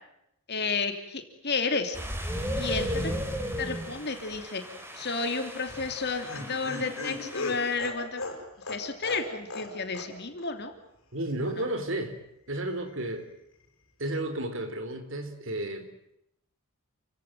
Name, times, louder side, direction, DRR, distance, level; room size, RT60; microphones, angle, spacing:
voice 1, 0.5-2.0 2.6-3.1 3.6-4.6 5.0-8.2 8.7-10.7, left 4 dB, 50° left, 6 dB, 3.0 m, -31 dB
sound 1, 1.9-7.8, equal, 10° right, 3.8 m, -35 dB
Laughter, 5.7-9.7 9.9-10.1 10.4-10.5, left 2 dB, 65° left, 6.8 m, -36 dB
voice 2, 11.1-12.2 12.5-13.3 14.0-15.9, right 1 dB, 60° right, 8 dB, 3.9 m, -32 dB
29.5 x 17.0 x 9.1 m, 0.80 s
head